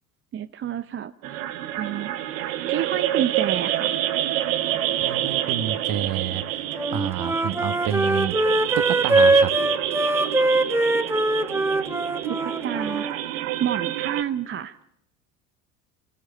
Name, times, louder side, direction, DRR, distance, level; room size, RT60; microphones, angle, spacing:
voice 1, 0.3-1.5 1.8-4.0 12.4-13.1 13.6-14.8, right 9 dB, 30° right, 10 dB, 0.8 m, -30 dB
sound 1, 1.2-14.2, right 12 dB, 70° right, 1.5 m, -28 dB
voice 2, 5.0-6.6 6.9-8.4 8.8-9.5, right 11 dB, 50° right, 12 dB, 1.7 m, -29 dB
Wind instrument woodwind instrument, 6.7-13.1, right 2 dB, 5° right, 1.1 m, -22 dB
28.0 x 19.0 x 6.8 m, 0.80 s
figure-of-eight pair, 70°, 42 cm